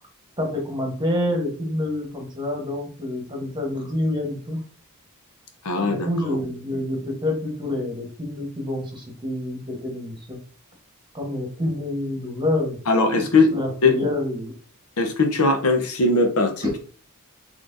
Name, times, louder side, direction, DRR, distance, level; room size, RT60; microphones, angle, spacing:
voice 1, 0.4-4.6 5.8-10.4 11.1-12.8 13.5-14.5, left 1 dB, 20° right, 1 dB, 1.1 m, -27 dB
voice 2, 5.6-6.4 12.9-13.5 13.8-14.0 15.0-16.8, left 3 dB, 80° left, 4 dB, 0.8 m, -20 dB
4.1 x 3.1 x 2.5 m, 0.40 s
head